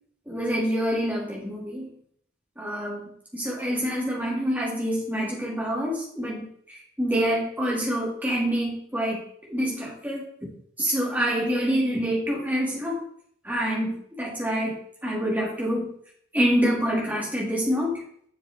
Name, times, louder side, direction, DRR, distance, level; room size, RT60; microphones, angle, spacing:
voice 1, 0.3-1.9 2.6-9.2 9.5-10.2 10.8-13.0 13.4-15.9 16.3-18.0, equal, 10° right, -4 dB, 2.4 m, -26 dB
7.5 x 6.5 x 3.6 m, 0.65 s
head